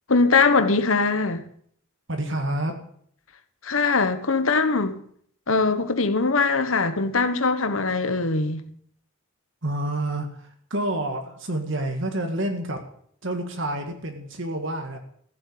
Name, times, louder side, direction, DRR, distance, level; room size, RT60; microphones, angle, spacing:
voice 1, 0.1-1.4 3.6-5.0 5.5-8.7, left 4 dB, 70° left, 1.4 m, -21 dB
voice 2, 2.1-2.7 9.6-12.8 13.2-15.0, right 1 dB, 60° right, 1.9 m, -28 dB
15.0 x 7.9 x 8.7 m
head